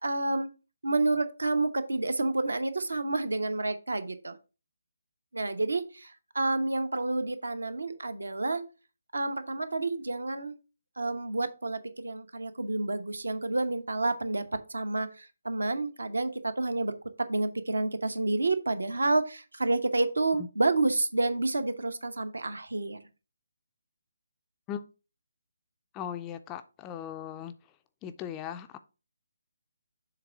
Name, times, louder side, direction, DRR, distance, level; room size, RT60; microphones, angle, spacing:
voice 1, 0.0-0.5 0.8-4.4 5.3-8.6 9.1-10.5 11.0-23.0, right 2 dB, 65° right, 10 dB, 0.8 m, -29 dB
voice 2, 25.9-27.5 28.0-28.8, left 9 dB, 15° left, 9 dB, 0.4 m, -38 dB
6.9 x 3.7 x 4.6 m, 0.31 s
figure-of-eight pair, 145°, 0 cm